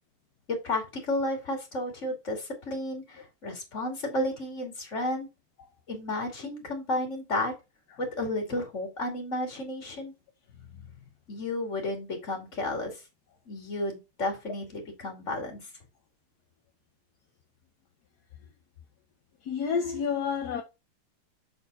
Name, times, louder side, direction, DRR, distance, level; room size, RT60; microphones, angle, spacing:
voice 1, 0.5-5.3 5.9-7.5 8.0-10.1 11.3-13.0 13.5-15.7, left 1 dB, 35° left, 2.7 m, -32 dB
voice 2, 19.4-20.6, left 6 dB, 60° left, 1.2 m, -29 dB
7.1 x 4.3 x 4.0 m
omnidirectional pair, 2.4 m